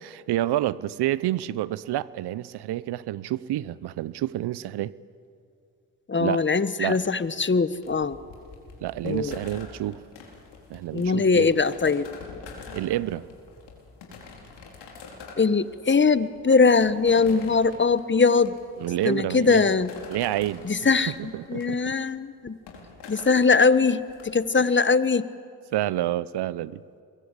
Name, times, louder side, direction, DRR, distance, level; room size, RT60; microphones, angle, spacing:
voice 1, 0.0-4.9 6.2-6.4 6.8-7.0 8.8-10.0 10.7-11.5 12.7-13.2 18.8-19.7 20.1-20.6 21.1-21.9 24.6-24.7 25.7-26.8, right 14 dB, 70° right, 19 dB, 0.8 m, -28 dB
voice 2, 6.1-8.2 9.0-9.4 10.9-12.1 15.4-18.5 19.0-19.9 20.6-21.1 21.5-22.6 23.1-25.2, left 4 dB, 25° left, 14 dB, 1.3 m, -21 dB
sound 1, 7.0-24.3, left 4 dB, 80° left, 4.5 m, -46 dB
25.5 x 22.0 x 8.3 m, 2.4 s
supercardioid pair, 50°, 41 cm